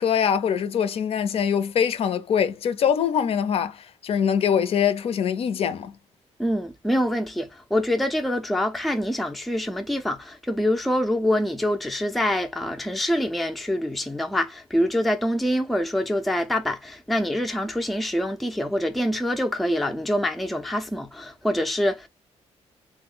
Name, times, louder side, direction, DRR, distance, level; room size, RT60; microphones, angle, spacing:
voice 1, 0.0-5.9, left 8 dB, 60° left, 0.5 m, -23 dB
voice 2, 6.4-22.1, left 1 dB, ahead, 0.4 m, -25 dB
3.1 x 2.1 x 3.6 m
cardioid pair, 135°, 11 cm